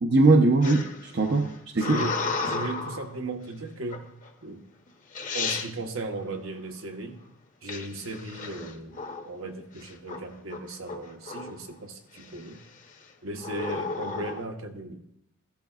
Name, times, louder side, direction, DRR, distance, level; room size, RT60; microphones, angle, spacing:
voice 1, 0.0-2.0, right 2 dB, 55° right, 3 dB, 0.7 m, -21 dB
sound 1, 0.6-3.1 3.9-4.3 4.9-5.0 5.1-5.7 7.7-9.3 9.8-10.2 10.5-11.7 12.2-12.6 13.4-14.4, left 4 dB, 35° left, 0.8 m, -33 dB
voice 2, 1.7-4.1 4.4-4.6 5.3-7.2 7.6-12.6 13.2-15.0, right 2 dB, 80° right, 3 dB, 1.1 m, -37 dB
14.0 x 11.5 x 2.4 m, 0.79 s
head